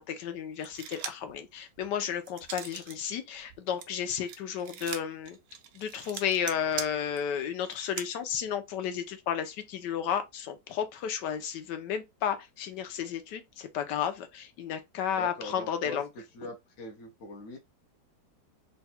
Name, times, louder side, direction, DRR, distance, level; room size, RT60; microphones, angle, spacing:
voice 1, 0.0-5.4 5.7-16.1, left 8 dB, 75° left, 1.4 m, -33 dB
sound 1, 0.6-1.3 1.8-3.0 3.3-8.1, right 8 dB, 80° right, 1.3 m, -41 dB
voice 2, 15.2-17.6, left 1 dB, 55° left, 1.0 m, -42 dB
3.9 x 2.3 x 4.2 m
omnidirectional pair, 1.9 m